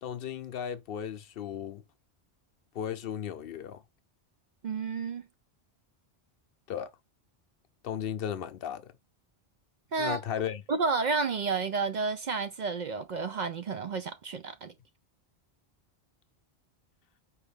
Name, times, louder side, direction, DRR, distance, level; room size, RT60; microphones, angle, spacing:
voice 1, 0.0-1.8 2.7-3.8 6.7-6.9 7.8-8.9 10.0-10.6, left 9 dB, 65° left, 0.7 m, -35 dB
voice 2, 4.6-5.2 9.9-10.2 10.7-14.7, right 4 dB, 55° right, 0.5 m, -31 dB
4.9 x 3.0 x 3.3 m
omnidirectional pair, 1.1 m